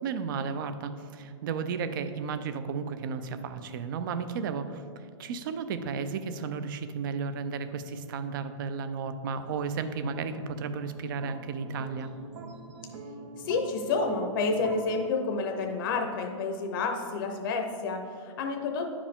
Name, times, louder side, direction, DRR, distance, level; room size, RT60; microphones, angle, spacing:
voice 1, 0.0-4.8 5.2-12.1, right 5 dB, 40° right, 10 dB, 0.4 m, -33 dB
sound 1, 9.3-15.1, right 3 dB, 65° right, 0.8 m, -44 dB
voice 2, 13.4-18.9, left 4 dB, 40° left, 4 dB, 0.6 m, -29 dB
9.7 x 4.8 x 3.5 m, 2.3 s
hypercardioid pair, 160°, 17 cm